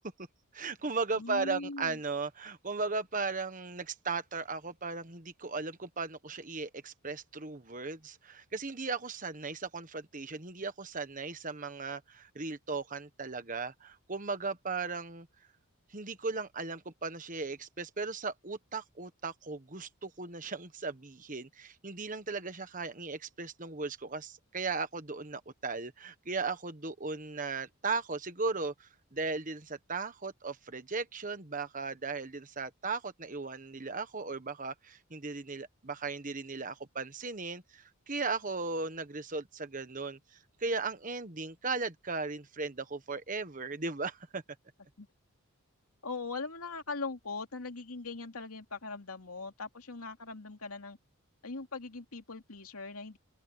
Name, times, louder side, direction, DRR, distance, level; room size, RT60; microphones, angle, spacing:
voice 1, 0.5-15.3 15.9-40.2 40.6-44.4, right 4 dB, 35° right, 1.3 m, -37 dB
voice 2, 1.2-2.0 45.0-45.1 46.0-51.0 51.4-53.2, left 3 dB, 80° left, 2.6 m, -40 dB
head